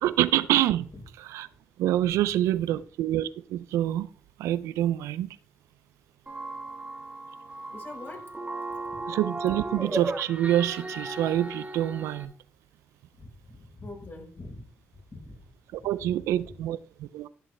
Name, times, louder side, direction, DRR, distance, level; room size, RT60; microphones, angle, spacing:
voice 1, 0.0-0.9 1.2-1.5 1.8-4.1 4.4-5.3 9.1-12.3 15.7-17.3, right 13 dB, 90° right, 17 dB, 0.3 m, -26 dB
sound 1, 6.3-12.3, right 2 dB, 30° right, 1.9 m, -36 dB
voice 2, 7.7-8.2 13.2-14.6 15.1-15.4 15.8-16.1, left 2 dB, 45° left, 1 dB, 4.5 m, -43 dB
11.0 x 7.7 x 3.2 m, 0.43 s
supercardioid pair, 50°, 5 cm